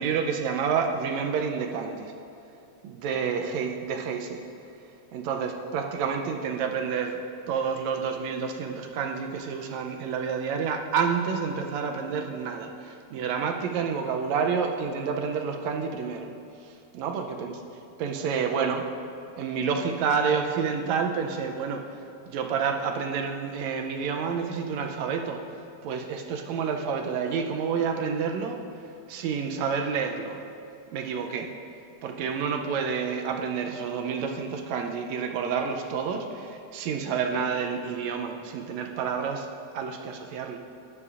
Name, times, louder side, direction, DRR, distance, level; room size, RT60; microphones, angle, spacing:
voice 1, 0.0-2.1 2.8-4.4 5.1-7.2 7.5-16.3 16.6-17.6 18.0-18.9 19.4-22.0 22.3-25.4 25.8-28.6 29.1-30.4 30.9-31.5 32.0-39.5 39.7-40.6, right 6 dB, 80° right, 4 dB, 1.8 m, -29 dB
13.5 x 10.5 x 2.4 m, 2.6 s
omnidirectional pair, 3.3 m